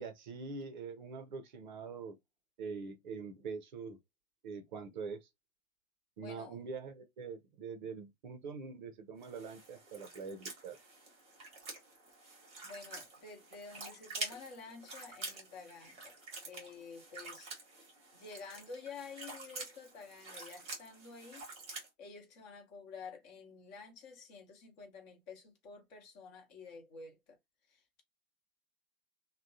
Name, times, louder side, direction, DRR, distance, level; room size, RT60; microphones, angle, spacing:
voice 1, 0.0-2.2 2.6-4.0 4.4-5.3 6.2-10.8, right 5 dB, 35° right, 0.6 m, -44 dB
voice 2, 6.2-6.6 12.6-16.1 16.4-17.5 18.1-21.5 22.0-27.4 27.7-28.0, left 4 dB, 30° left, 1.0 m, -50 dB
sound 1, 9.2-21.9, right 3 dB, 15° right, 1.0 m, -48 dB
3.4 x 2.2 x 2.5 m
figure-of-eight pair, 110°, 43 cm